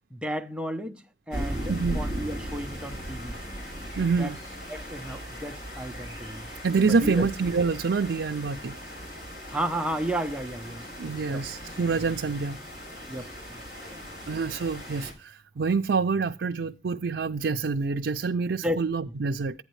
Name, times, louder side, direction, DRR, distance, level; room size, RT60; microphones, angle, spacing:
voice 1, 0.1-3.4 4.2-4.3 4.7-6.5 6.9-7.3 9.5-10.8 11.3-11.4 13.1-13.6 18.6-18.8, right 1 dB, 5° right, 0.7 m, -33 dB
sound 1, 1.3-15.1, equal, 60° left, 4.9 m, -38 dB
voice 2, 1.7-2.0 4.0-4.4 6.6-8.8 11.0-12.6 14.3-19.5, right 4 dB, 80° right, 0.5 m, -26 dB
11.5 x 9.1 x 3.1 m
head